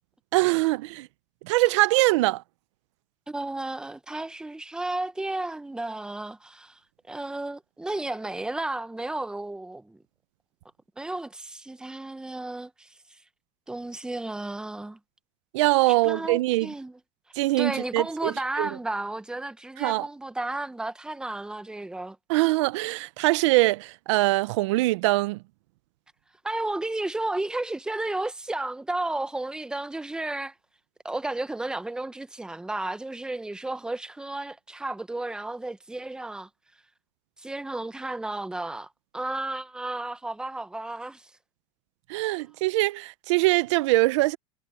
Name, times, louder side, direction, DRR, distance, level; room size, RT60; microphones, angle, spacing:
voice 1, 0.3-1.1 1.4-2.4 15.5-16.7 17.3-18.7 19.8-20.0 22.3-25.4 42.1-44.4, right 20 dB, 85° right, 0.7 m, -23 dB
voice 2, 3.3-6.8 7.1-10.0 11.0-12.9 13.7-15.0 15.9-17.0 17.6-22.2 26.4-30.5 31.0-36.5 37.4-41.3, right 2 dB, 5° right, 0.9 m, -33 dB
supercardioid pair, 130°, 15 cm